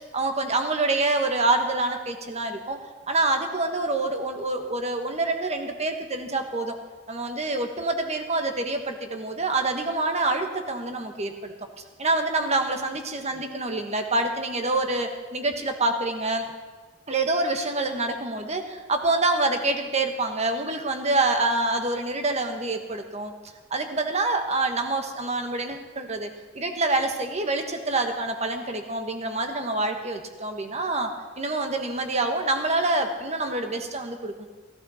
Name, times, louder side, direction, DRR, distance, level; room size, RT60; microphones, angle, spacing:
voice 1, 0.1-2.8 3.1-6.8 7.1-11.5 12.0-16.5 17.1-23.3 23.7-34.5, right 2 dB, 35° right, 5 dB, 1.4 m, -26 dB
16.0 x 15.0 x 4.3 m, 1.3 s
head